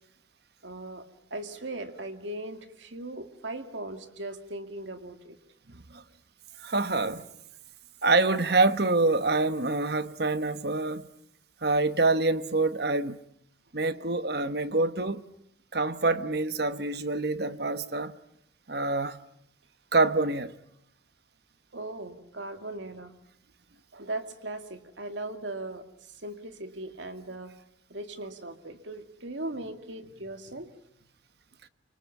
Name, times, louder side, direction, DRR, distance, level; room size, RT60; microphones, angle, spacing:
voice 1, 0.6-1.0 1.3-5.4 21.7-23.1 23.9-27.5 27.9-30.7, right 2 dB, 70° right, 2.2 m, -38 dB
voice 2, 5.7-6.0 6.6-7.3 8.0-11.1 11.6-13.2 13.7-15.2 15.7-18.1 18.7-19.2 19.9-20.5, right 3 dB, 55° right, 1.2 m, -26 dB
29.0 x 25.5 x 7.3 m
head